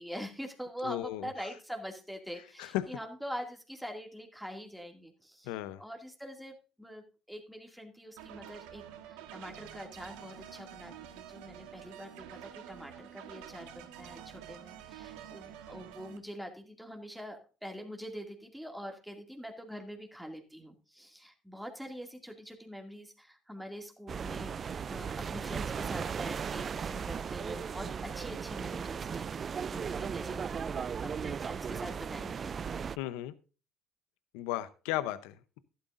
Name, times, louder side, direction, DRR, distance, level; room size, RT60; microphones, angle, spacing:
voice 1, 0.0-5.5 5.8-32.6, equal, ahead, 3 dB, 2.3 m, -44 dB
voice 2, 0.8-1.3 2.6-2.9 5.5-5.8 33.0-33.3 34.3-35.6, left 14 dB, 85° left, 15 dB, 0.7 m, -35 dB
sound 1, 8.2-16.2, right 10 dB, 90° right, 1.4 m, -48 dB
sound 2, 24.1-33.0, right 6 dB, 40° right, 0.4 m, -36 dB
12.0 x 12.0 x 2.5 m, 0.34 s
supercardioid pair, 90°, 0 cm